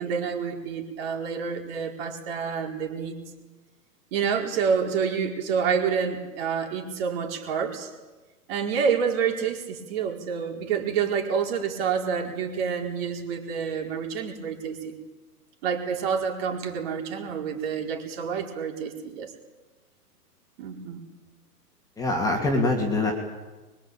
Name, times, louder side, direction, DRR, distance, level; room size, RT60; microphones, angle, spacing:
voice 1, 0.0-3.2 4.1-7.9 8.5-15.0 15.6-19.3 20.6-21.0, right 6 dB, 40° right, 2 dB, 4.8 m, -28 dB
voice 2, 22.0-23.1, left 2 dB, 5° left, 1 dB, 2.7 m, -24 dB
24.0 x 23.0 x 9.0 m, 1.2 s
hypercardioid pair, 150°, 47 cm